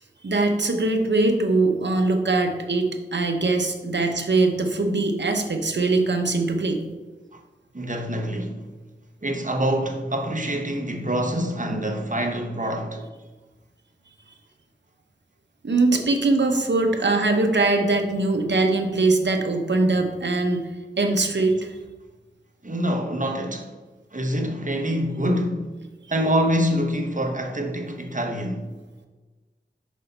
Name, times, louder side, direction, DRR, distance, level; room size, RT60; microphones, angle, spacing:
voice 1, 0.2-6.8 15.6-20.7 21.0-21.8, right 2 dB, 65° right, 0.9 m, -22 dB
voice 2, 7.7-8.6 9.2-13.1 22.6-23.7 24.1-25.7 26.1-28.6, equal, 40° right, 1.0 m, -25 dB
6.5 x 5.3 x 4.0 m
wide cardioid pair, 65°, 20 cm